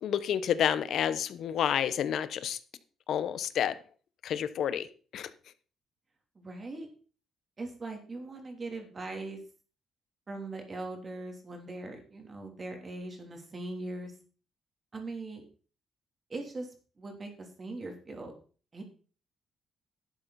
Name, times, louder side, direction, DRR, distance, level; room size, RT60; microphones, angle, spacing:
voice 1, 0.0-2.6 3.1-3.7 4.2-4.9 5.1-5.3, left 9 dB, 70° left, 14 dB, 0.9 m, -29 dB
voice 2, 6.3-6.9 7.6-9.4 10.3-14.1 14.9-15.4 16.3-18.3 18.7-18.8, right 2 dB, 35° right, 3 dB, 3.3 m, -40 dB
12.0 x 8.1 x 4.2 m, 0.38 s
cardioid pair, 90°, 0 cm